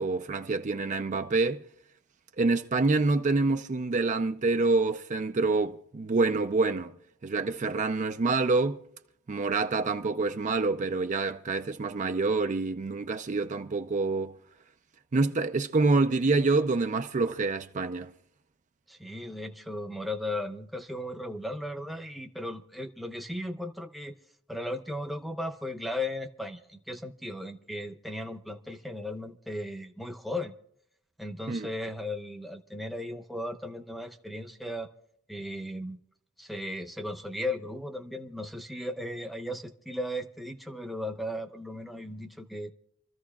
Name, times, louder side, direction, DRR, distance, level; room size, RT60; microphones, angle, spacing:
voice 1, 0.0-1.6 2.4-6.9 7.2-8.8 9.3-14.3 15.1-18.1 31.5-31.7, right 3 dB, 40° right, 0.5 m, -27 dB
voice 2, 18.9-24.1 24.5-30.5 31.2-34.9 35.3-36.0 36.4-42.7, left 1 dB, ahead, 0.9 m, -36 dB
27.0 x 14.0 x 2.3 m
head